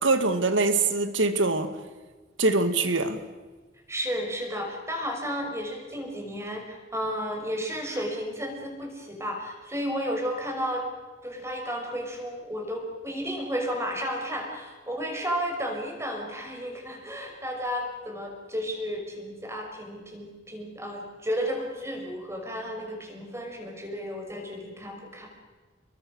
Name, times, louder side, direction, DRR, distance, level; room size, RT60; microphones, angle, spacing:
voice 1, 0.0-1.7 2.4-3.2, right 3 dB, 85° right, 2.2 m, -23 dB
voice 2, 3.9-10.9 11.2-25.3, equal, 15° right, 5.7 m, -33 dB
28.5 x 22.5 x 6.5 m
head